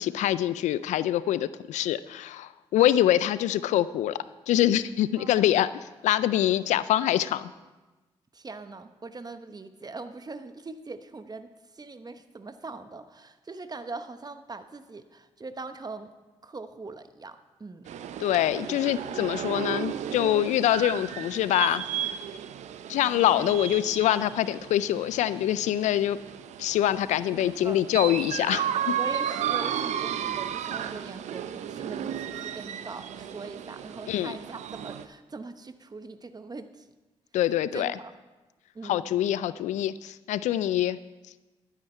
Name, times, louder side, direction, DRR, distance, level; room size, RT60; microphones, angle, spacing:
voice 1, 0.0-4.2 4.5-5.7 6.0-7.5 18.2-21.8 22.9-26.2 26.6-29.0 34.1-34.3 37.3-37.9 38.8-41.0, left 12 dB, 80° left, 17 dB, 0.4 m, -25 dB
voice 2, 5.2-5.5 8.3-16.1 16.4-17.9 27.3-27.8 29.0-36.9 37.7-38.2 38.7-39.2, right 3 dB, 35° right, 10 dB, 1.0 m, -41 dB
sound 1, 17.9-35.1, right 9 dB, 75° right, 0.6 m, -34 dB
12.5 x 9.5 x 4.4 m, 1.1 s
supercardioid pair, 45°, 12 cm